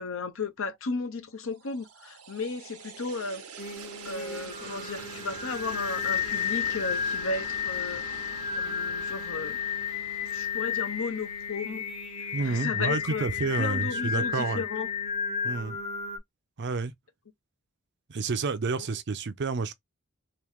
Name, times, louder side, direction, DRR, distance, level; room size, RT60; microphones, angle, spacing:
voice 1, 0.0-3.4 4.0-8.0 8.5-9.6 10.3-11.8 12.2-13.3 13.6-14.9, left 4 dB, 65° left, 0.8 m, -34 dB
sound 1, 1.5-12.6, right 6 dB, 90° right, 0.8 m, -45 dB
Singing, 3.6-16.2, left 7 dB, 30° left, 0.8 m, -32 dB
voice 2, 12.3-14.6 15.4-15.8 16.6-16.9 18.1-19.7, right 4 dB, 55° right, 0.5 m, -29 dB
3.0 x 2.8 x 3.5 m
head